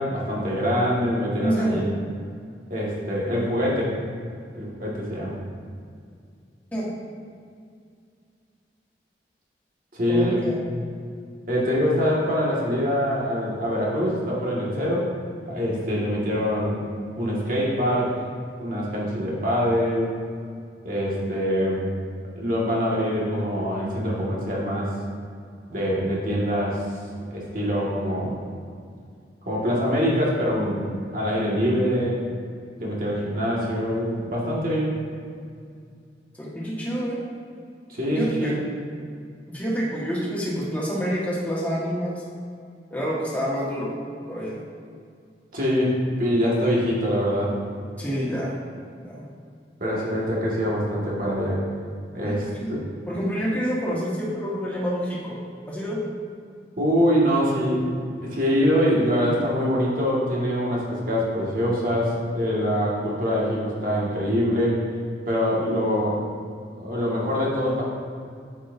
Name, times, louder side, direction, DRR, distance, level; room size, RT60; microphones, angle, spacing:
voice 1, 0.0-1.9 2.7-3.9 4.5-5.3 9.9-10.5 11.5-15.1 15.5-16.8 17.2-18.2 18.6-20.1 20.8-21.8 22.4-24.9 25.7-26.8 27.3-28.4 29.5-30.9 31.1-32.3 32.8-35.0 37.9-38.5 45.5-47.6 49.8-51.6 52.1-52.8 56.8-57.8 58.3-64.8 65.3-66.2 66.8-67.8, equal, 50° right, -5 dB, 2.0 m, -24 dB
voice 2, 1.4-1.8 6.7-6.9 10.1-10.6 36.4-37.2 38.1-38.6 39.5-42.2 42.9-43.9 44.3-44.6 48.0-48.6 49.0-49.2 52.2-52.3 52.6-52.7 53.1-55.4 55.7-56.0, equal, 10° left, -6 dB, 1.7 m, -27 dB
8.6 x 7.3 x 2.7 m, 2.3 s
head